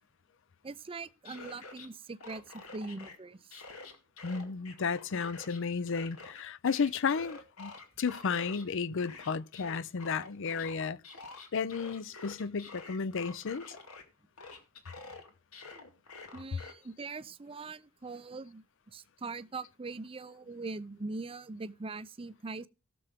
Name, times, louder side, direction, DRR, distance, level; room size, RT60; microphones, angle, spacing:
voice 1, 0.6-3.6 16.3-22.7, right 3 dB, 25° right, 0.5 m, -42 dB
sound 1, 1.0-1.9 2.2-3.2 3.5-5.6 5.9-8.6 9.0-14.0 14.4-16.7, left 3 dB, 85° left, 2.2 m, -48 dB
voice 2, 4.2-11.0 11.5-13.7, left 5 dB, 60° left, 0.5 m, -33 dB
18.0 x 6.9 x 3.6 m
head